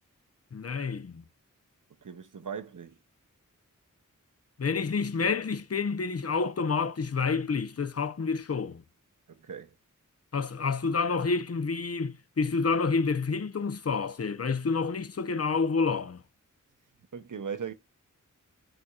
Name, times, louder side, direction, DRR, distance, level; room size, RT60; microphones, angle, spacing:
voice 1, 0.5-1.2 4.6-8.8 10.3-16.2, left 4 dB, 45° left, 0.7 m, -29 dB
voice 2, 2.0-3.0 9.3-9.7 17.1-17.7, right 7 dB, 65° right, 0.8 m, -38 dB
11.0 x 4.2 x 2.3 m
wide cardioid pair, 45°, 33 cm